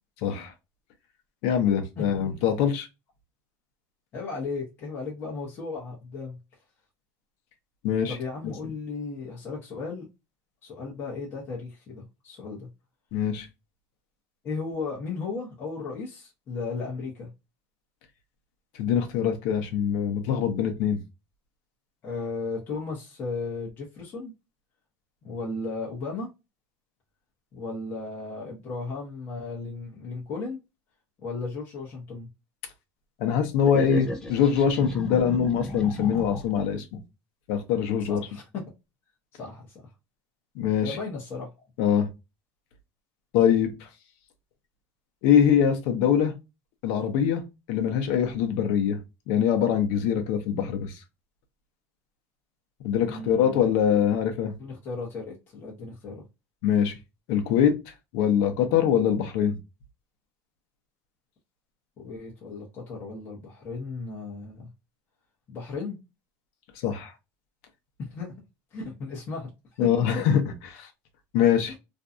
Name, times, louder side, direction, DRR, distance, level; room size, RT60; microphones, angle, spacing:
voice 1, 0.2-0.5 1.4-2.9 7.8-8.2 13.1-13.5 18.8-21.0 33.2-37.0 37.5-38.2 40.6-41.0 41.8-42.1 43.3-43.7 45.2-46.3 46.8-47.4 47.7-49.0 49.3-50.9 52.8-54.5 56.6-56.9 57.3-57.7 58.1-59.6 66.8-67.1 69.8-70.5 71.3-71.7, left 8 dB, 65° left, 0.7 m, -23 dB
voice 2, 2.0-2.4 4.1-6.4 8.1-10.0 10.6-12.7 14.4-17.3 22.0-24.3 25.2-26.3 27.5-30.6 31.2-32.3 38.1-38.4 39.3-39.8 40.8-41.5 53.0-53.7 54.6-56.2 62.0-64.7 65.5-66.0 68.1-68.3 68.7-69.5 70.0-70.1 71.7-71.8, left 4 dB, 30° left, 0.8 m, -35 dB
sound 1, 33.7-36.7, left 1 dB, 10° left, 0.4 m, -35 dB
2.6 x 2.2 x 2.5 m
cardioid pair, 180°, 8 cm